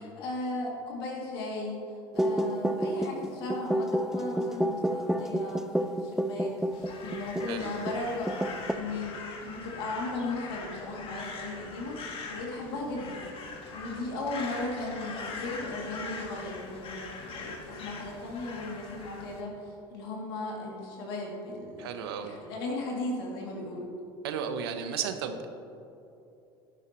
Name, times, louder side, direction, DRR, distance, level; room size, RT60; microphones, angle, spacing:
voice 1, 0.0-1.8 2.1-8.3 8.7-13.3 13.7-23.9, left 2 dB, 80° left, -2 dB, 2.5 m, -36 dB
sound 1, 2.2-7.6 7.9-8.0 8.3-8.7, right 1 dB, 5° right, 0.5 m, -29 dB
Crow, 6.7-19.4, left 4 dB, 45° left, 1.7 m, -42 dB
voice 2, 21.8-22.3 24.2-25.5, right 7 dB, 80° right, 8 dB, 0.9 m, -34 dB
11.5 x 11.0 x 3.0 m, 2.8 s
hypercardioid pair, 85°, 13 cm